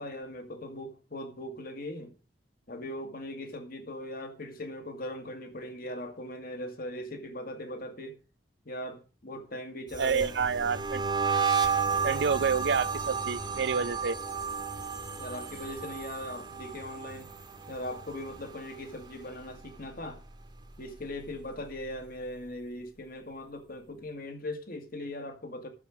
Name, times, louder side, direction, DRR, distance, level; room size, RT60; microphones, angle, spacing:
voice 1, 0.0-2.1 2.7-8.2 8.7-10.3 15.2-17.3 17.7-20.2 20.8-25.7, left 1 dB, 55° left, 2.1 m, -39 dB
sound 1, 9.9-19.1 19.4-19.8 20.1-21.7, right 5 dB, 25° right, 1.5 m, -33 dB
voice 2, 10.0-11.0 12.0-14.2, right 6 dB, 80° right, 0.6 m, -28 dB
11.0 x 7.3 x 6.3 m
head